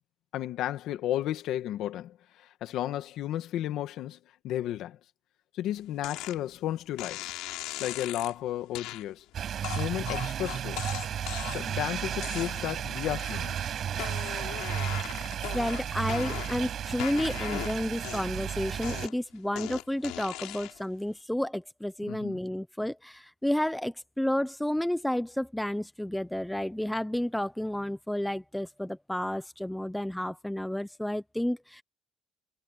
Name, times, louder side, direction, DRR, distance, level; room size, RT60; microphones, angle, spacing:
voice 1, 0.3-4.2 4.4-5.0 5.5-7.2 7.8-9.2 9.8-10.8 11.5-13.7 22.1-22.4, left 12 dB, 50° left, 1.8 m, -33 dB
sound 1, 6.0-6.4 7.0-8.3 8.7-9.0 9.6-11.8 12.2-12.8 13.2-13.6 13.9-16.7 17.0-18.5 18.8-20.9, left 18 dB, 70° left, 5.8 m, -39 dB
sound 2, 9.3-19.1, right 9 dB, 35° right, 6.0 m, -33 dB
voice 2, 15.5-31.8, left 1 dB, ahead, 0.6 m, -31 dB
cardioid pair, 175°, 0 cm